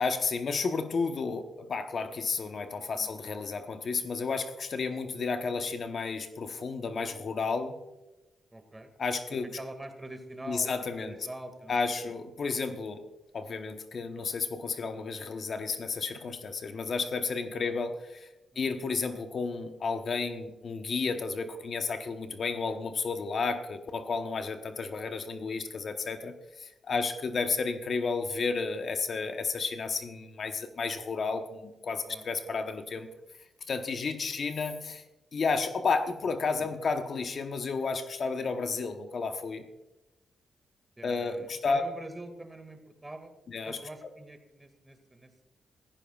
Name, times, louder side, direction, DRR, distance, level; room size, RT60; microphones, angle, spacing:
voice 1, 0.0-7.8 9.0-9.5 10.5-11.2 11.7-13.0 13.3-18.3 18.6-33.1 33.7-35.0 35.3-39.7 41.0-41.8 43.5-43.8, left 4 dB, 60° left, 7 dB, 1.0 m, -32 dB
voice 2, 2.8-3.1 8.5-8.9 9.4-11.8 12.0-12.1 14.1-14.3 17.6-17.8 18.5-18.8 22.7-22.8 26.9-27.0 32.0-32.8 36.2-36.7 41.0-43.3 43.7-45.4, right 1 dB, 20° right, 8 dB, 2.0 m, -45 dB
15.0 x 14.5 x 2.4 m, 1.0 s
cardioid pair, 60°, 0 cm